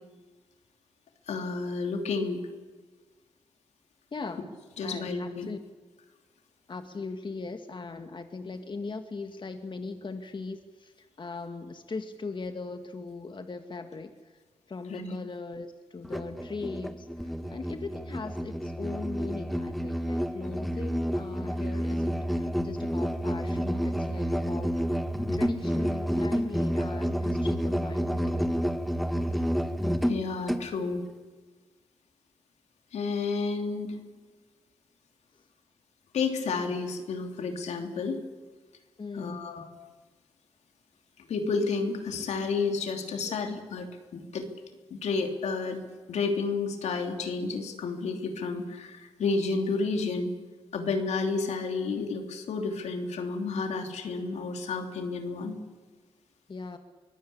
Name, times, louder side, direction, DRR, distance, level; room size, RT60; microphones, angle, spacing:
voice 1, 1.3-2.4 4.8-5.5 14.9-15.2 29.3-29.4 30.1-31.0 32.9-34.0 36.1-38.2 39.1-39.7 41.3-44.5 44.9-45.8 46.1-50.3 50.7-55.6, left 4 dB, 75° left, 4 dB, 3.0 m, -31 dB
voice 2, 4.1-4.5 4.8-5.6 6.7-14.3 14.7-24.8 25.3-28.5 39.0-39.5 43.2-43.4 56.5-56.8, left 4 dB, 45° left, 7 dB, 1.8 m, -39 dB
Musical instrument, 16.0-30.7, equal, ahead, 2.2 m, -29 dB
23.5 x 17.0 x 8.7 m, 1.3 s
supercardioid pair, 45°, 12 cm